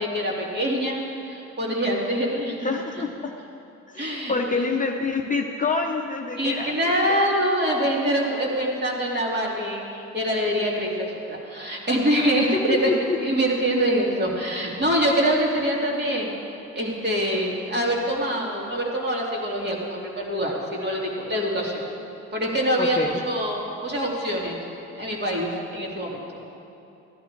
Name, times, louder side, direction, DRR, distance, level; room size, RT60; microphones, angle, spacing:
voice 1, 0.0-2.7 3.0-3.1 4.0-4.7 6.3-12.9 13.2-16.3 16.7-21.8 22.3-24.6 25.0-26.2, equal, 35° right, -3 dB, 2.8 m, -25 dB
voice 2, 2.6-3.4 3.9-7.2 12.4-13.2 22.8-23.1, left 4 dB, 25° left, 2 dB, 0.8 m, -27 dB
14.5 x 11.5 x 4.6 m, 2.7 s
cardioid pair, 90°, 30 cm